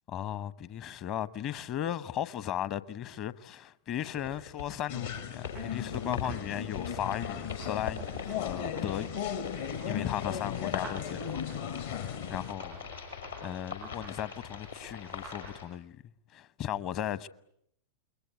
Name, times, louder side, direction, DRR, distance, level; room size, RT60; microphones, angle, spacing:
voice 1, 0.1-9.2 9.6-11.4 11.8-12.8 13.4-16.0 16.3-17.3, left 10 dB, 40° left, 1.0 m, -36 dB
sound 1, 4.0-15.6, left 5 dB, 75° left, 5.8 m, -42 dB
sound 2, 4.9-12.5, left 8 dB, 60° left, 1.6 m, -37 dB
28.5 x 22.0 x 9.2 m
figure-of-eight pair, 90°, 0 cm